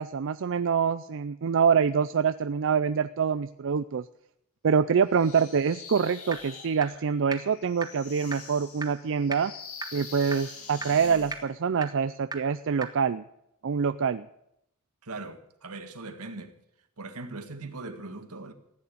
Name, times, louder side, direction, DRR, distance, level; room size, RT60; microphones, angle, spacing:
voice 1, 0.0-4.0 4.6-9.5 9.9-13.2 13.6-14.3, right 6 dB, 60° right, 0.4 m, -25 dB
sound 1, 5.1-11.4, left 5 dB, 70° left, 2.8 m, -45 dB
sound 2, 6.3-6.4 6.8-6.9 7.3-7.4 7.8-7.9 8.3-8.4 8.8-8.9 9.3-9.4 9.8-9.9 10.3-10.4 10.8-10.9 11.3-11.4 11.8-11.9 12.3-12.4 12.8-12.9, right 4 dB, 20° right, 1.6 m, -32 dB
voice 2, 15.0-16.6 17.0-18.5, right 3 dB, 85° right, 1.7 m, -40 dB
15.5 x 9.6 x 8.4 m
head